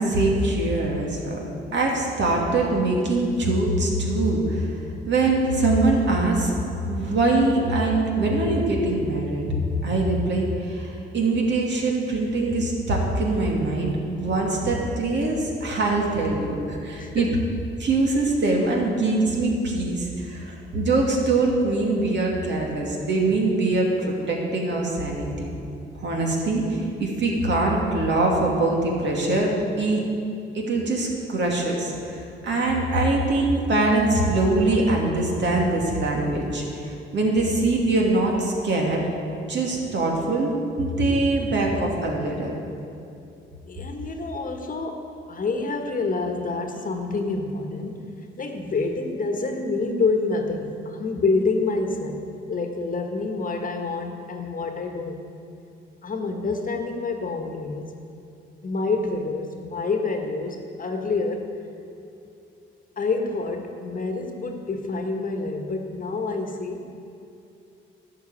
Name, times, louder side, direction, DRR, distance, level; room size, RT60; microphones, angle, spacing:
voice 1, 0.0-4.7 5.1-6.5 6.9-9.4 9.8-17.3 17.8-25.5 26.0-29.5 29.8-30.0 30.5-39.0 39.5-42.5, right 2 dB, 60° right, -1 dB, 2.5 m, -23 dB
voice 2, 17.0-17.4 43.7-55.2 56.0-57.9 58.6-61.5 63.0-66.9, left 3 dB, 40° left, 4 dB, 1.4 m, -27 dB
11.5 x 5.9 x 8.7 m, 2.7 s
cardioid pair, 75°, 21 cm